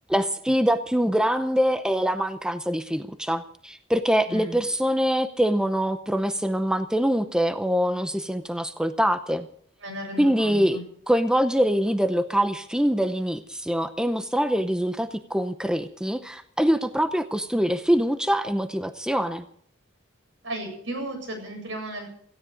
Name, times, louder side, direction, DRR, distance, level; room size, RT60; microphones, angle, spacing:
voice 1, 0.1-9.5 10.2-19.5, equal, 5° right, 9 dB, 0.7 m, -24 dB
voice 2, 4.3-4.6 9.8-10.8 20.4-22.1, right 1 dB, 70° right, 4 dB, 7.6 m, -34 dB
17.5 x 16.0 x 5.2 m, 0.64 s
head